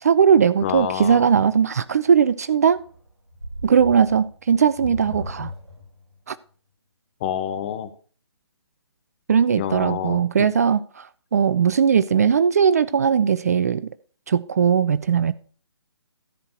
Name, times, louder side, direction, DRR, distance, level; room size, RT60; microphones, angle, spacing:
voice 1, 0.0-2.8 3.6-5.5 6.3-6.4 9.3-13.9 14.3-15.3, right 7 dB, 35° right, 0.4 m, -19 dB
voice 2, 0.6-1.3 7.2-7.9 9.6-10.2, left 10 dB, 25° left, 0.8 m, -27 dB
sound 1, 2.7-6.1, equal, 75° right, 5.1 m, -36 dB
13.5 x 4.6 x 6.3 m
figure-of-eight pair, 140°, 14 cm